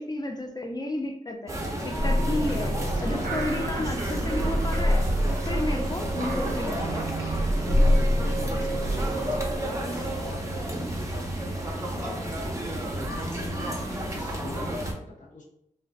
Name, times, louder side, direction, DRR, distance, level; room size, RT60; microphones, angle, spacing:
voice 1, 0.0-2.7 3.0-7.2 12.0-12.2, left 1 dB, 30° left, 0.5 m, -32 dB
sound 1, 1.5-14.9, right 1 dB, 20° right, 0.6 m, -32 dB
sound 2, 1.8-14.2, equal, 5° left, 0.9 m, -46 dB
sound 3, 2.0-9.6, equal, 70° right, 0.5 m, -26 dB
voice 2, 2.7-3.3 4.1-4.5 6.5-6.6 7.2-7.4 8.5-11.4 11.9-13.6 13.9-15.4, left 2 dB, 65° left, 0.7 m, -44 dB
2.4 x 2.2 x 2.3 m
cardioid pair, 50°, 14 cm